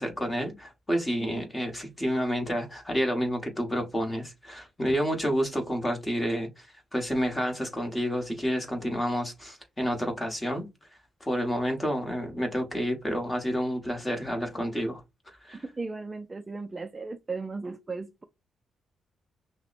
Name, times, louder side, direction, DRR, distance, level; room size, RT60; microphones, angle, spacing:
voice 1, 0.0-6.7 6.9-10.7 11.2-15.0 15.4-15.7, equal, 15° left, 1.2 m, -29 dB
voice 2, 15.6-18.2, right 3 dB, 20° right, 0.3 m, -36 dB
5.7 x 2.1 x 2.5 m
cardioid pair, 135°, 0 cm